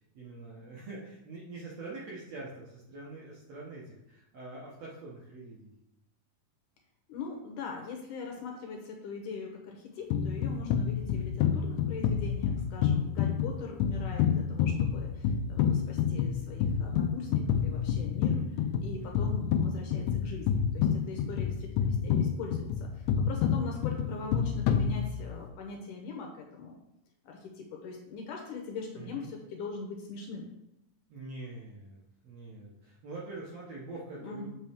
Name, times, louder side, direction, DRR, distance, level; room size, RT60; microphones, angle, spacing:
voice 1, 0.1-5.7 18.3-18.5 19.0-19.2 29.0-29.3 31.1-34.5, right 2 dB, 65° right, -5 dB, 1.8 m, -44 dB
voice 2, 7.1-26.7 27.2-30.5 34.2-34.5, left 4 dB, 75° left, 1 dB, 2.1 m, -41 dB
sound 1, 10.1-25.5, left 7 dB, 90° left, 1.7 m, -29 dB
7.2 x 5.3 x 3.5 m, 0.85 s
omnidirectional pair, 4.2 m